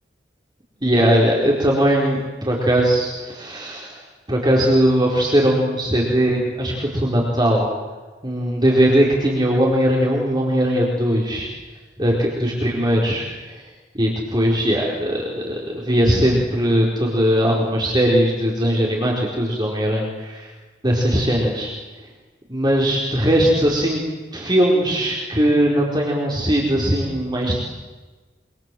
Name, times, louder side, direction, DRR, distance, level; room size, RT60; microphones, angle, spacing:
voice 1, 0.8-4.0 4.3-7.7 8.2-11.5 12.0-13.6 13.9-20.5 20.8-21.7 22.5-24.0 24.3-27.6, equal, 25° right, -2 dB, 4.5 m, -19 dB
27.5 x 26.0 x 7.8 m, 1.3 s
head